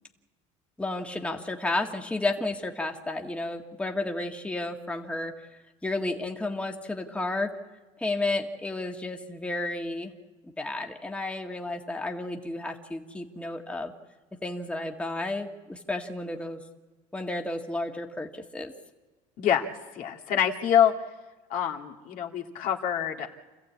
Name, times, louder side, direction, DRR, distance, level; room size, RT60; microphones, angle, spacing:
voice 1, 0.8-5.5 5.8-7.5 8.0-10.1 10.6-13.9 14.4-16.6 17.1-18.7, left 2 dB, 10° left, 2 dB, 1.8 m, -32 dB
voice 2, 19.4-19.7 19.9-20.9 21.5-23.3, left 9 dB, 60° left, 1 dB, 2.2 m, -25 dB
28.0 x 14.5 x 8.5 m, 1.2 s
supercardioid pair, 110°, 16 cm